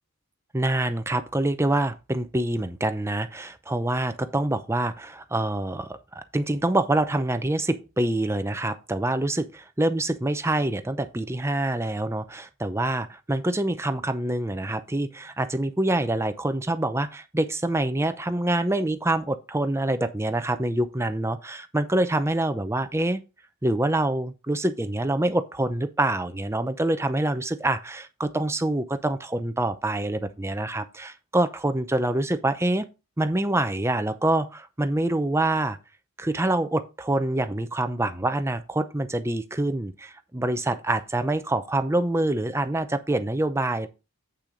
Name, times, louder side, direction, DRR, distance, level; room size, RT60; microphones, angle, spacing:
voice 1, 0.5-23.2 23.6-32.9 33.2-35.8 36.2-43.9, right 1 dB, 10° right, 0.6 m, -26 dB
8.4 x 6.1 x 3.9 m
head